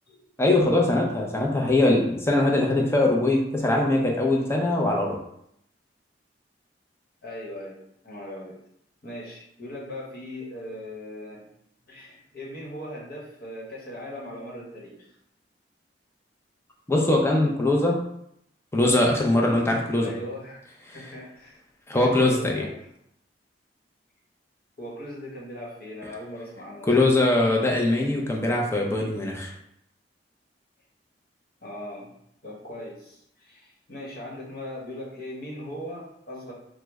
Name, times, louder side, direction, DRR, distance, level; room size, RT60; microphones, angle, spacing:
voice 1, 0.4-5.1 16.9-18.0 18.7-20.1 20.9-21.0 21.9-22.7 26.9-29.5, left 2 dB, 15° left, 0 dB, 0.5 m, -22 dB
voice 2, 7.2-8.6 9.0-11.5 11.9-15.0 20.0-20.6 20.9-21.6 21.9-22.7 24.8-26.9 31.6-32.1 32.4-36.5, left 1 dB, 60° left, -4 dB, 1.0 m, -39 dB
3.1 x 2.1 x 3.4 m, 0.75 s
head